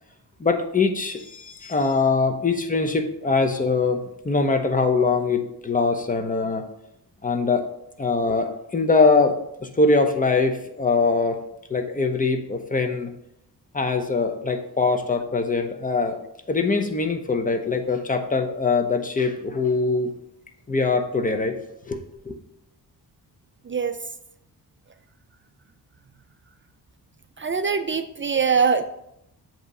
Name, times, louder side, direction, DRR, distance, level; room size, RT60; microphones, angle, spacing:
voice 1, 0.4-4.0 4.2-6.6 7.2-7.6 8.0-11.4 11.7-13.1 13.7-16.2 16.5-20.1 20.7-21.6 21.9-22.0 22.3-22.4, left 4 dB, 20° left, 5 dB, 0.8 m, -22 dB
voice 2, 23.7-24.0 27.4-28.8, right 5 dB, 30° right, 8 dB, 0.4 m, -22 dB
7.8 x 3.1 x 5.5 m, 0.79 s
cardioid pair, 95°, 40 cm